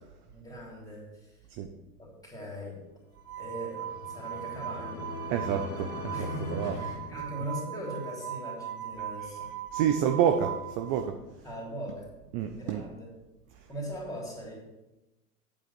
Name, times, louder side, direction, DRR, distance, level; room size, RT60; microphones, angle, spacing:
voice 1, 0.3-1.4 2.0-2.8 3.4-5.1 6.1-9.5 11.4-12.1 12.6-13.1 13.7-14.6, equal, 5° left, -3 dB, 3.3 m, -40 dB
sound 1, 3.2-11.0, right 10 dB, 70° right, 0.8 m, -39 dB
sound 2, 3.4-7.9, left 4 dB, 90° left, 1.5 m, -41 dB
voice 2, 5.3-6.8 9.7-11.2 12.3-12.8, right 8 dB, 30° right, 7 dB, 0.5 m, -28 dB
8.6 x 7.7 x 4.3 m, 1.0 s
hypercardioid pair, 110°, 48 cm